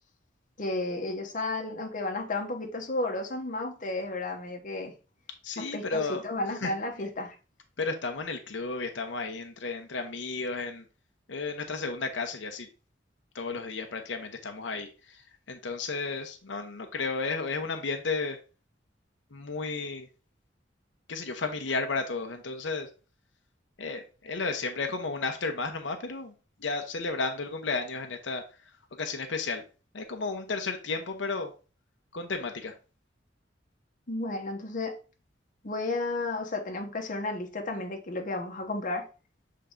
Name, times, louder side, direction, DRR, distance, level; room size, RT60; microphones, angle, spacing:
voice 1, 0.6-4.9 5.6-7.4 34.1-35.0 35.6-39.1, left 2 dB, 45° left, 1.1 m, -33 dB
voice 2, 5.4-6.2 6.6-6.7 7.8-10.8 11.3-12.7 13.3-15.2 15.5-18.4 19.3-20.1 21.1-22.9 23.8-26.3 26.6-28.4 29.0-29.6 29.9-31.5 32.1-32.7, left 4 dB, 90° left, 0.8 m, -33 dB
6.8 x 3.8 x 3.7 m
head